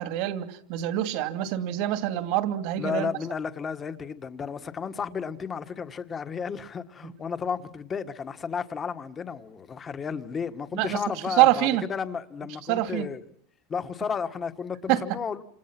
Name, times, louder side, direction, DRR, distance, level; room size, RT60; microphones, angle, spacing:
voice 1, 0.0-3.1 7.0-7.1 10.7-11.8 12.7-13.1 14.9-15.0, right 14 dB, 55° right, 2.5 m, -25 dB
voice 2, 2.8-13.2 13.7-15.4, left 6 dB, 20° left, 1.6 m, -33 dB
28.5 x 28.0 x 6.1 m
supercardioid pair, 150°, 0 cm